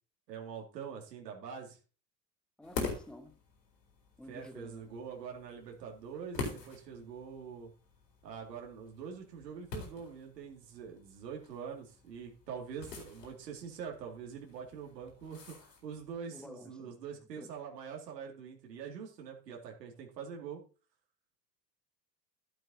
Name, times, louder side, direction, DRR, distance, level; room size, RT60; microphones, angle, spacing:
voice 1, 0.3-1.8 4.3-7.7 8.2-15.6 15.8-20.6, right 6 dB, 75° right, 2.5 m, -44 dB
body falls, 2.6-16.2, left 4 dB, 75° left, 3.8 m, -46 dB
voice 2, 2.6-3.4 4.2-4.9 16.3-16.9 17.4-17.5, left 1 dB, ahead, 1.1 m, -50 dB
13.5 x 7.9 x 2.8 m
figure-of-eight pair, 80°, 50 cm